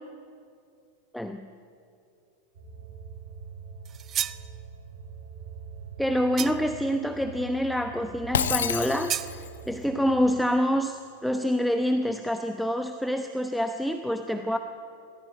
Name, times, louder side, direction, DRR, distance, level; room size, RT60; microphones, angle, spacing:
voice 1, 1.1-1.5 6.0-9.4 9.7-14.6, equal, ahead, 7 dB, 1.0 m, -27 dB
sound 1, 2.5-10.3, right 5 dB, 60° right, 6.2 m, -44 dB
sound 2, 3.8-4.5 6.4-6.8 9.1-9.4, right 10 dB, 30° right, 0.6 m, -31 dB
Shatter, 8.3-9.6, left 8 dB, 65° left, 1.3 m, -28 dB
27.0 x 18.5 x 8.1 m, 2.5 s
figure-of-eight pair, 90°, 0 cm